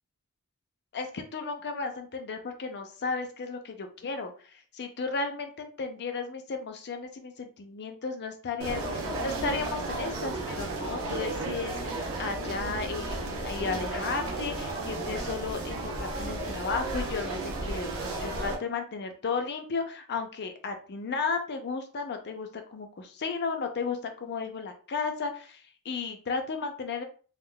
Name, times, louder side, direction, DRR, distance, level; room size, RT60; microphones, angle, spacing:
voice 1, 0.9-4.3 4.7-27.0, left 4 dB, 50° left, 5 dB, 0.5 m, -34 dB
sound 1, 8.6-18.6, right 2 dB, 65° right, 0.8 m, -33 dB
3.6 x 2.4 x 2.2 m, 0.39 s
head